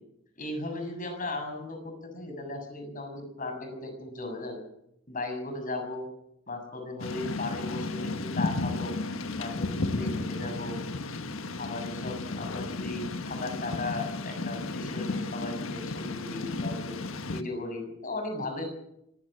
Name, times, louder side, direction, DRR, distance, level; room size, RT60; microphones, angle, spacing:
voice 1, 0.4-4.6 5.1-6.1 6.5-9.0 9.4-10.8 11.6-17.0 17.3-18.7, left 2 dB, 40° left, 5 dB, 7.1 m, -36 dB
Thunder / Rain, 7.0-17.4, left 3 dB, 85° left, 1.4 m, -33 dB
25.5 x 17.0 x 7.5 m, 0.79 s
head